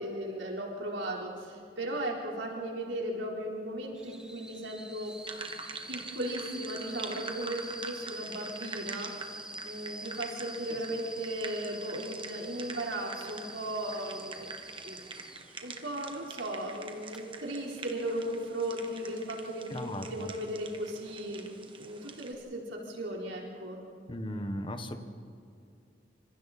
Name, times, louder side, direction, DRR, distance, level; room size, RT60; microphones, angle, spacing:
voice 1, 0.0-5.1 5.9-9.1 9.6-14.6 14.8-15.1 15.6-21.5 21.8-23.8, right 1 dB, 90° right, -1 dB, 4.3 m, -36 dB
sound 1, 4.0-15.5 17.0-17.2, right 1 dB, 5° right, 1.1 m, -45 dB
sound 2, 5.3-22.3, right 4 dB, 30° right, 1.5 m, -46 dB
voice 2, 19.7-20.3 24.1-25.0, equal, 30° left, 6 dB, 1.4 m, -36 dB
26.0 x 26.0 x 4.3 m, 2.5 s
head